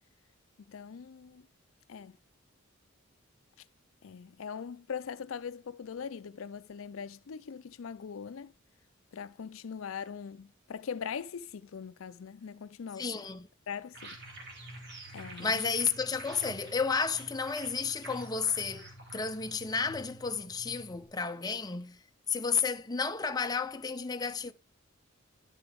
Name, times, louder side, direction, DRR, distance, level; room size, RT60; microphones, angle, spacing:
voice 1, 0.7-1.5 1.9-2.2 4.0-8.5 9.1-13.1 13.7-14.2 15.1-15.6, left 6 dB, 80° left, 0.5 m, -41 dB
voice 2, 13.0-13.5 15.4-22.0 22.3-24.5, left 5 dB, 20° left, 0.6 m, -32 dB
sound 1, 13.9-21.1, right 1 dB, 55° right, 3.1 m, -48 dB
11.0 x 6.9 x 3.4 m
head